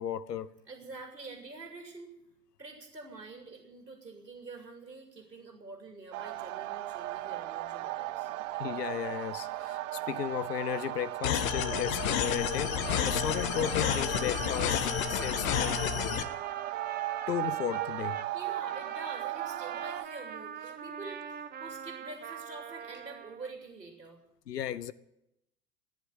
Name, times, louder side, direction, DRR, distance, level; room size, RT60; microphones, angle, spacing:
voice 1, 0.0-0.5 8.6-15.8 17.3-18.2 24.5-24.9, left 10 dB, 75° left, 0.9 m, -35 dB
voice 2, 0.7-2.1 2.6-8.3 16.2-16.3 18.3-24.2, right 3 dB, 90° right, 2.7 m, -46 dB
sound 1, 6.1-20.1, right 15 dB, 50° right, 0.9 m, -37 dB
sound 2, 11.2-16.2, left 9 dB, 55° left, 1.3 m, -30 dB
Trumpet, 12.8-23.5, right 8 dB, 20° right, 0.9 m, -43 dB
15.5 x 10.0 x 8.9 m
figure-of-eight pair, 85°, 48 cm